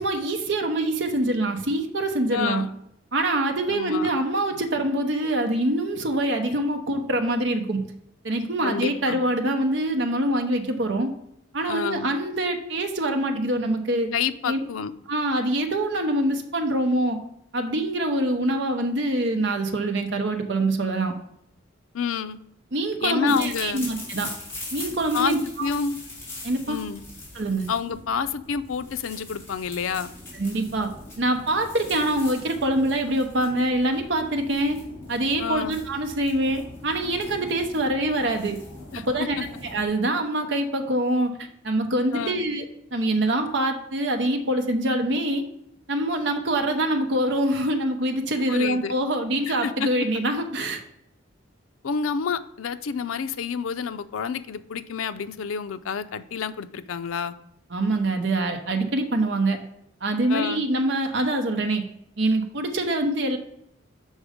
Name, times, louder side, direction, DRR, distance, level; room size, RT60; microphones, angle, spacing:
voice 1, 0.0-2.6 3.1-7.8 8.2-11.1 11.5-14.1 14.5-14.6 15.1-17.2 17.5-21.1 22.7-24.3 24.7-25.7 26.4-26.8 27.3-27.7 30.3-34.8 35.1-38.6 39.0-39.4 39.6-42.7 42.9-45.4 45.9-50.8 57.7-59.6 60.0-61.8 62.2-63.4, right 1 dB, 60° right, 4 dB, 0.8 m, -25 dB
voice 2, 2.3-2.7 3.7-4.1 8.6-9.2 11.7-12.1 14.1-14.9 21.9-22.4 23.0-23.9 25.1-25.3 25.6-26.0 26.7-27.0 27.7-30.1 35.4-35.8 38.9-39.0 42.1-42.4 48.5-48.9 49.5-49.9 51.8-57.3 60.3-60.7, left 6 dB, 90° left, 11 dB, 0.4 m, -29 dB
sound 1, 23.3-39.9, left 2 dB, 15° left, 3.0 m, -41 dB
6.4 x 5.3 x 5.0 m, 0.76 s
head